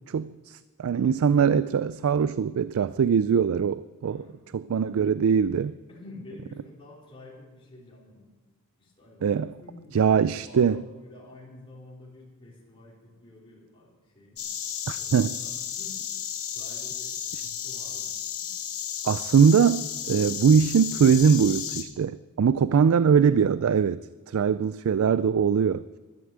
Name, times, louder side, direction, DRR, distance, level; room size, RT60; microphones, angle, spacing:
voice 1, 0.1-4.2 4.5-5.7 9.2-9.5 9.9-10.8 14.9-15.3 19.0-24.0 24.3-25.8, right 6 dB, 75° right, 0.4 m, -22 dB
voice 2, 4.0-4.5 5.6-8.3 8.8-14.4 14.9-16.1 16.5-18.1 18.4-18.5 21.6-21.7 22.7-23.0, left 2 dB, 25° left, 3.6 m, -49 dB
Insect, 14.4-21.8, left 9 dB, 85° left, 1.9 m, -33 dB
12.0 x 12.0 x 8.1 m
head